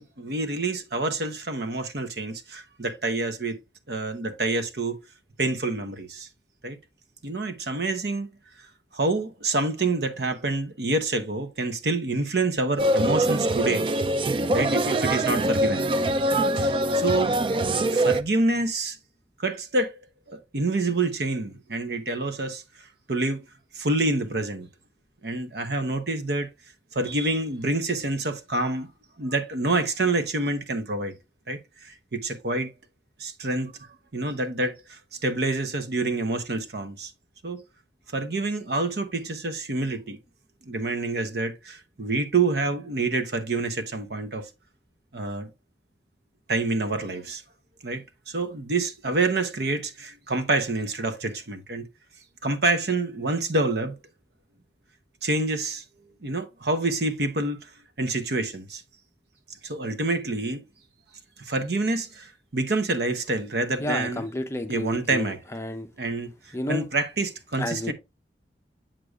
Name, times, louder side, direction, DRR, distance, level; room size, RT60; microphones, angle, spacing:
voice 1, 0.0-3.6 3.9-5.0 5.4-6.3 6.6-6.8 7.2-8.3 8.9-13.9 14.5-15.9 16.5-17.5 17.7-19.0 19.4-20.0 20.3-22.6 23.1-23.4 23.7-24.7 25.2-26.5 26.9-28.9 29.2-31.1 31.5-32.7 33.2-33.7 34.1-37.1 37.4-37.6 38.1-40.2 40.7-44.5 45.1-45.5 46.5-47.4 47.8-51.9 52.4-53.9 55.2-55.8 56.2-57.7 58.0-58.8 59.6-60.6 61.5-64.3 64.7-65.4 66.0-66.3 66.7-67.9, right 2 dB, 65° right, 0.8 m, -27 dB
sound 1, 12.8-18.2, right 1 dB, 30° right, 0.3 m, -23 dB
voice 2, 63.8-65.9 66.5-66.9 67.6-67.9, left 1 dB, 15° left, 0.6 m, -31 dB
7.6 x 6.4 x 2.3 m
head